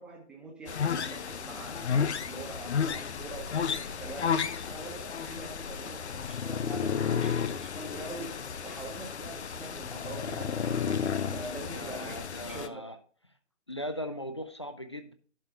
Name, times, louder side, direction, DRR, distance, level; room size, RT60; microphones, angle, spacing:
voice 1, 0.0-4.3 4.7-8.3 8.6-10.9 11.3-12.2 12.5-12.8, right 3 dB, 5° right, 0 dB, 0.7 m, -44 dB
sound 1, 0.7-12.7, left 7 dB, 65° left, 0.8 m, -32 dB
voice 2, 11.7-13.0 13.7-15.1, equal, 25° left, 9 dB, 0.4 m, -38 dB
11.5 x 4.7 x 4.5 m, 0.43 s
figure-of-eight pair, 145°, 36 cm